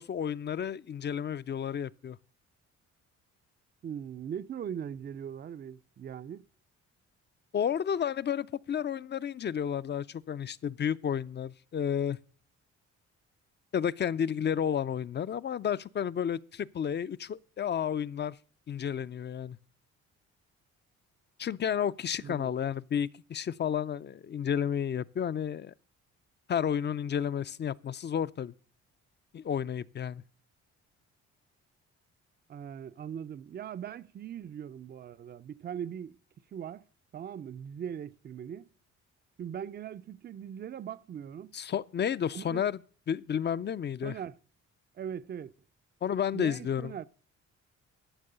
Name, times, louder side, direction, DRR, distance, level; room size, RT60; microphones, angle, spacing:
voice 1, 0.0-2.2 7.5-12.2 13.7-18.4 18.7-19.6 21.4-25.7 26.5-28.5 29.3-30.2 41.5-42.8 43.1-44.2 46.0-46.9, left 8 dB, 35° left, 0.5 m, -31 dB
voice 2, 3.8-6.5 22.2-22.5 32.5-36.2 36.5-36.8 37.1-38.7 39.4-41.5 42.3-42.7 44.0-44.4 44.9-45.5 46.3-47.1, right 8 dB, 35° right, 0.4 m, -40 dB
12.5 x 7.0 x 6.7 m
cardioid pair, 90°, 30 cm